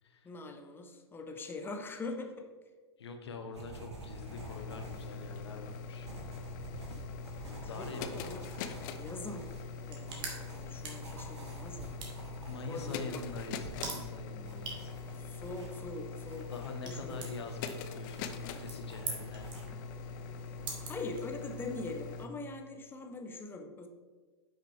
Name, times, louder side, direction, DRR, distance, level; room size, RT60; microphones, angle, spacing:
voice 1, 0.2-2.5 7.4-8.4 9.0-9.6 9.9-12.1 12.7-13.2 15.2-16.5 16.8-17.2 19.7-19.8 20.8-23.9, left 3 dB, 15° left, 4 dB, 0.9 m, -43 dB
voice 2, 3.0-6.1 7.6-8.1 12.5-14.9 16.5-19.5, left 3 dB, 70° left, 4 dB, 1.3 m, -44 dB
sound 1, 3.5-19.6, right 2 dB, 75° right, 1.9 m, -50 dB
sound 2, 3.8-22.3, left 5 dB, 45° left, 0.7 m, -43 dB
sound 3, 9.6-21.7, right 4 dB, 30° right, 1.8 m, -47 dB
9.2 x 5.8 x 3.6 m, 1.4 s
figure-of-eight pair, 105°, 14 cm